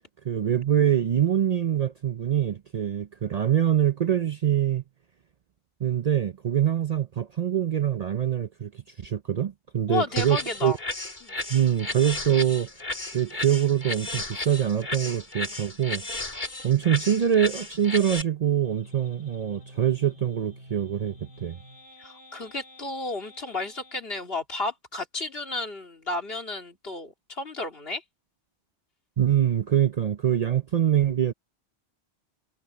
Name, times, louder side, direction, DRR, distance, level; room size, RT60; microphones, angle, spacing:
voice 1, 0.2-4.8 5.8-10.7 11.5-12.7 13.1-16.4 16.6-21.6 29.2-31.3, right 9 dB, 50° right, 0.6 m, -24 dB
voice 2, 9.9-10.8 11.2-11.5 22.0-28.0, left 3 dB, 65° left, 3.1 m, -32 dB
sound 1, 10.2-18.2, left 2 dB, 45° left, 2.8 m, -34 dB
sound 2, 18.6-24.0, equal, 65° right, 7.3 m, -49 dB
omnidirectional pair, 1.1 m